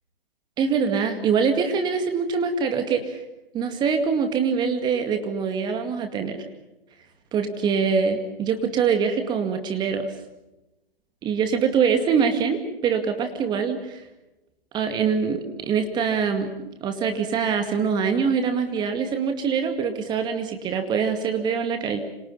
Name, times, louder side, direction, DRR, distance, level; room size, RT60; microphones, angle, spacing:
voice 1, 0.6-3.2 3.5-6.4 7.3-10.1 11.2-14.0 14.7-16.5 16.8-22.0, right 6 dB, 15° right, 6 dB, 2.2 m, -24 dB
29.5 x 26.5 x 5.6 m, 0.96 s
figure-of-eight pair, 140°, 29 cm